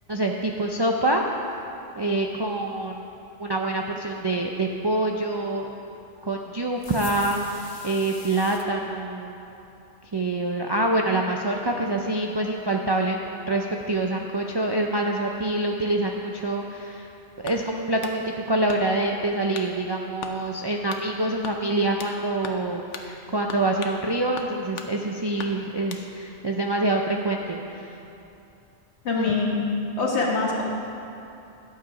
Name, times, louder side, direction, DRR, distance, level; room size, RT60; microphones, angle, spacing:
voice 1, 0.1-1.2 2.0-3.0 3.4-5.8 6.2-9.5 10.1-17.1 17.4-27.9 29.2-29.3, right 2 dB, 40° right, 0 dB, 0.3 m, -26 dB
sound 1, 6.8-8.7, left 5 dB, 50° left, 0.9 m, -41 dB
sound 2, 17.4-18.2 18.7-19.1 19.5-19.7 20.2-20.4 20.9-21.1 21.4-22.2 22.4-22.7 22.9-23.1 23.5-24.0 24.4-24.9 25.4-26.1, left 5 dB, 85° left, 1.1 m, -39 dB
voice 2, 29.0-29.6 30.0-30.6, left 3 dB, 65° left, -2 dB, 1.7 m, -24 dB
11.5 x 7.4 x 4.9 m, 2.8 s
omnidirectional pair, 1.2 m